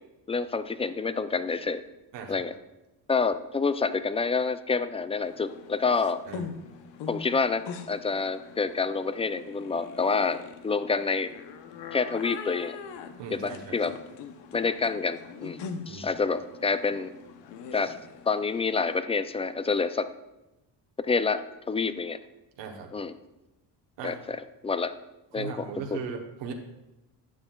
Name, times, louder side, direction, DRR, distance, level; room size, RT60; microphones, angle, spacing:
voice 1, 0.3-1.8 2.3-2.5 3.1-6.2 7.1-11.3 11.9-12.8 13.3-13.9 14.5-15.6 15.9-17.1 17.7-17.9 18.3-20.1 21.0-22.2 22.9-23.1 24.0-24.4 24.6-24.9 25.3-25.5 25.9-26.0, left 4 dB, 15° left, 12 dB, 0.3 m, -28 dB
sound 1, 5.2-19.0, left 6 dB, 75° left, 0.8 m, -43 dB
voice 2, 13.2-13.8 15.9-16.1 22.6-22.9 24.0-24.3 25.3-26.5, right 5 dB, 80° right, 2 dB, 1.1 m, -38 dB
11.0 x 7.9 x 2.3 m, 0.96 s
cardioid pair, 85°, 43 cm